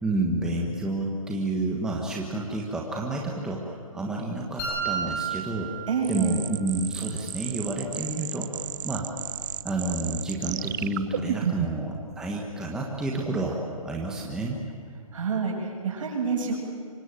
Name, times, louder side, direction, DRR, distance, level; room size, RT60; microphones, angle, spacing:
voice 1, 0.0-5.7 6.1-8.5 8.8-9.0 9.6-13.6 13.8-14.6, right 2 dB, 5° right, -2 dB, 1.4 m, -30 dB
sound 1, 4.6-6.6, right 5 dB, 20° left, 5.0 m, -32 dB
voice 2, 5.9-6.3 15.1-16.6, right 5 dB, 60° right, 0 dB, 7.7 m, -27 dB
sound 2, 6.0-11.9, right 10 dB, 35° right, 0.6 m, -33 dB
24.5 x 21.0 x 9.0 m, 2.2 s
hypercardioid pair, 165°, 19 cm